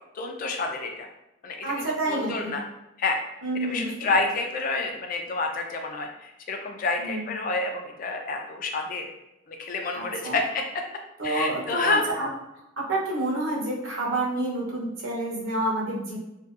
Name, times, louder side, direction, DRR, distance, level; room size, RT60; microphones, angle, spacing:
voice 1, 0.1-1.1 1.4-2.6 3.0-3.2 3.5-9.0 9.5-10.6 11.2-12.2, left 3 dB, 45° left, 3 dB, 0.3 m, -29 dB
voice 2, 1.6-2.6 3.4-4.2 7.0-7.3 9.9-10.4 11.2-12.3 12.8-16.2, right 2 dB, 80° right, -4 dB, 0.8 m, -29 dB
2.6 x 2.2 x 2.4 m, 0.90 s
head